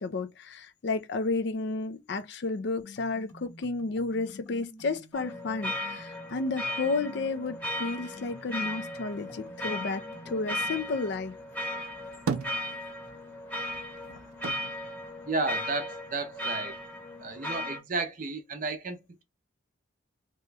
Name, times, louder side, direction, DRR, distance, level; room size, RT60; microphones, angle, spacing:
voice 1, 0.0-11.4, left 3 dB, 55° left, 0.4 m, -32 dB
sound 1, 2.8-10.8, left 1 dB, 80° left, 1.5 m, -50 dB
sound 2, 5.1-17.8, left 1 dB, 10° left, 0.9 m, -36 dB
sound 3, 11.8-13.3 13.6-16.0 16.4-17.3, right 5 dB, 90° right, 0.4 m, -37 dB
voice 2, 15.3-16.8 17.2-19.2, right 3 dB, 40° right, 0.6 m, -33 dB
2.9 x 2.2 x 3.3 m
head